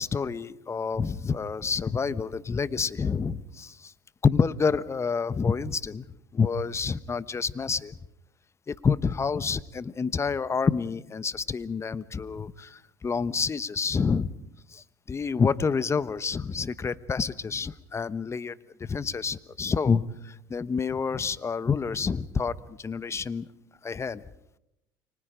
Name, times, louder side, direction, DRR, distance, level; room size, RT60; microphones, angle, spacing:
voice 1, 0.0-3.9 4.2-6.0 6.3-7.9 8.7-14.3 14.7-18.5 18.8-23.5 23.8-24.2, left 5 dB, 25° left, 17 dB, 1.1 m, -28 dB
29.5 x 25.0 x 5.1 m, 0.83 s
supercardioid pair, 80°, 10 cm